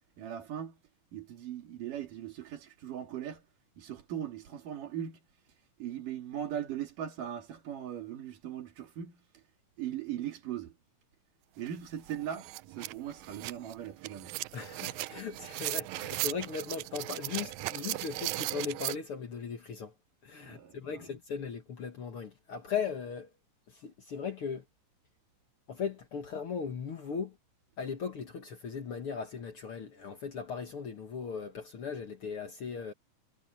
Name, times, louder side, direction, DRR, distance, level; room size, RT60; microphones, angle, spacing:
voice 1, 0.2-0.8 1.1-3.4 3.8-5.2 5.8-9.4 9.8-10.8 11.6-14.4 20.4-21.0, right 10 dB, 75° right, 3.8 m, -39 dB
sound 1, 11.7-11.8 12.1-19.0, right 18 dB, 90° right, 1.6 m, -37 dB
voice 2, 14.5-19.9 20.2-23.3 23.7-24.6 25.7-27.4 27.8-32.9, left 6 dB, 50° left, 1.8 m, -38 dB
omnidirectional pair, 3.9 m